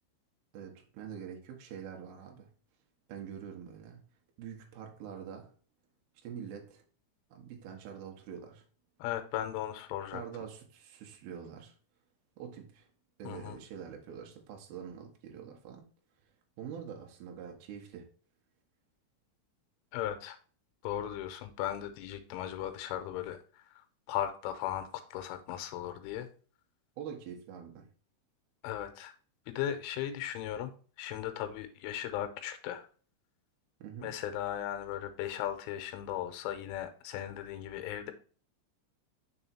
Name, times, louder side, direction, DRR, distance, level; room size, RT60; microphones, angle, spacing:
voice 1, 0.5-2.5 3.1-4.0 4.4-5.5 6.2-6.8 7.3-8.6 10.1-11.8 12.4-12.9 13.2-15.9 16.6-18.1 27.0-27.9 33.8-34.1, right 8 dB, 75° right, 2.2 m, -45 dB
voice 2, 9.0-10.2 13.2-13.6 19.9-20.4 20.8-23.4 24.1-26.3 28.6-29.1 29.5-30.7 31.0-32.8 34.0-38.1, left 11 dB, 90° left, 3.2 m, -37 dB
6.8 x 3.5 x 4.2 m
omnidirectional pair, 5.6 m